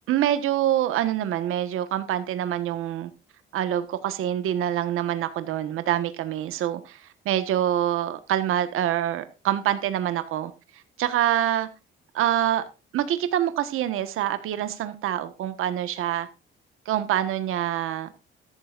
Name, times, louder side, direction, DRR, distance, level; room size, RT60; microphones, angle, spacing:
voice 1, 0.1-3.1 3.5-10.5 11.0-11.7 12.1-12.6 12.9-16.3 16.8-18.1, right 11 dB, 80° right, 1.4 m, -25 dB
14.0 x 12.0 x 2.5 m
cardioid pair, 170°, 21 cm